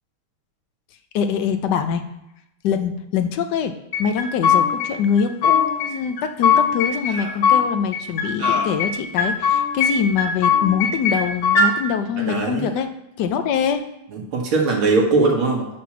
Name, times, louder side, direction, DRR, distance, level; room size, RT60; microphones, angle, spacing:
voice 1, 1.1-2.0 2.6-12.9 13.2-13.8, left 7 dB, 65° left, 7 dB, 1.2 m, -23 dB
sound 1, 3.9-4.9 5.2-5.9 6.2-7.6 7.9-8.9 9.2-9.9 10.2-11.7, left 6 dB, 85° left, 2.1 m, -19 dB
sound 2, 6.1-6.2 7.0-7.4 8.4-8.9, right 3 dB, 55° right, 1.6 m, -33 dB
voice 2, 12.2-12.7 14.1-15.7, right 3 dB, 85° right, -1 dB, 2.6 m, -20 dB
9.3 x 4.4 x 6.2 m, 0.86 s
omnidirectional pair, 2.2 m